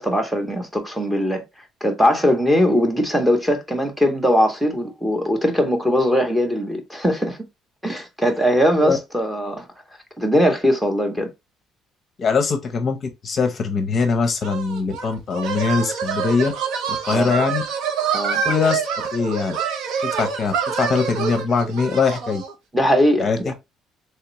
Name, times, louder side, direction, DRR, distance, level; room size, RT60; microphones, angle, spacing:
voice 1, 0.0-1.4 1.8-7.4 7.8-9.7 10.2-11.3 17.1-17.3 18.1-18.4 22.7-23.5, equal, 5° right, 0.7 m, -20 dB
voice 2, 12.2-13.0 13.2-16.5 16.9-17.6 18.4-18.8 19.1-19.6 20.0-22.4 23.2-23.5, left 5 dB, 35° left, 0.6 m, -22 dB
sound 1, 14.4-22.5, right 7 dB, 75° right, 1.0 m, -26 dB
3.5 x 3.3 x 2.9 m
cardioid pair, 165°, 0 cm